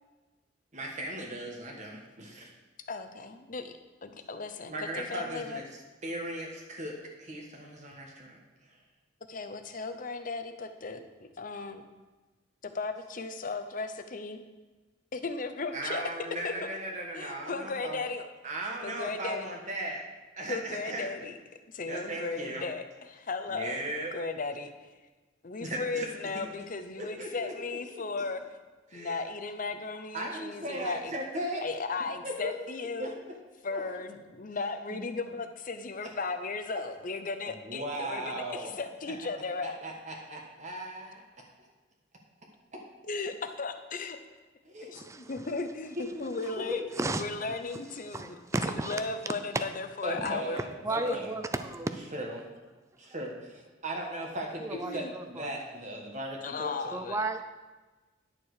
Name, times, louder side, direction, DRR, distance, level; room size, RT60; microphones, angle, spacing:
voice 1, 0.7-2.5 4.7-5.6 6.0-8.4 15.7-18.0 18.4-20.0 20.4-21.1 21.8-22.6 23.5-24.1 25.6-26.1 27.0-28.2 28.9-29.2 30.1-31.6 32.2-32.5 33.0-33.1 33.7-33.8 34.9-35.0 36.0-36.1 37.6-38.7 39.6-41.2 42.7-42.8 44.6-44.9 45.2-45.3 45.9-46.8 50.0-51.4 52.1-52.4 53.0-54.6 54.9-56.7, right 1 dB, 40° right, 0 dB, 1.4 m, -37 dB
voice 2, 2.9-3.7 4.0-5.6 9.3-11.8 12.6-14.4 15.1-16.0 16.4-16.5 17.1-18.3 18.8-19.5 20.5-21.4 21.7-23.8 24.1-24.9 25.4-28.4 28.9-31.1 31.6-33.2 33.6-39.8 43.0-44.2 44.9-48.4 48.7-50.6 51.0-51.2 54.7-55.1 56.4-57.2, left 3 dB, 45° left, 8 dB, 0.8 m, -36 dB
voice 3, 44.9-45.3 47.0-47.2 48.1-49.0 49.5-49.6 50.2-50.3 50.8-51.9 54.6-55.6 56.9-57.4, right 2 dB, 15° right, 8 dB, 0.4 m, -33 dB
10.5 x 7.1 x 4.9 m, 1.2 s
head